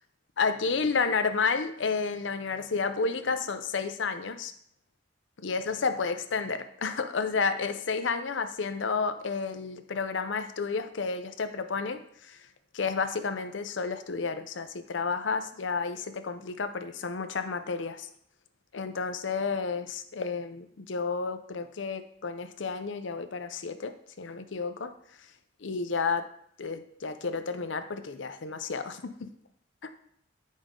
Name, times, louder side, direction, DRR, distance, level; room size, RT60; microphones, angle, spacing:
voice 1, 0.4-4.5 5.4-12.0 12.3-12.4 12.7-18.1 18.7-24.9 25.6-26.3 26.6-29.0 29.8-29.9, left 4 dB, 80° left, 9 dB, 0.7 m, -31 dB
9.0 x 5.2 x 3.7 m, 0.67 s
head